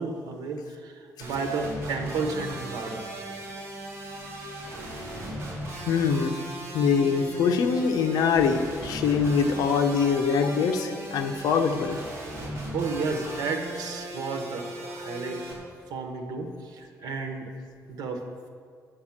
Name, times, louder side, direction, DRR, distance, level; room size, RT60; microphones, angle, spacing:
voice 1, 0.0-3.1 12.7-15.4 15.9-17.5 17.9-18.2, right 4 dB, 90° right, 5 dB, 1.2 m, -32 dB
sound 1, 1.2-15.5, right 1 dB, 40° right, 2.3 m, -37 dB
voice 2, 5.9-6.4 6.7-12.0, left 5 dB, 90° left, 6 dB, 0.9 m, -23 dB
9.3 x 6.9 x 7.2 m, 2.1 s
cardioid pair, 160°, 7 cm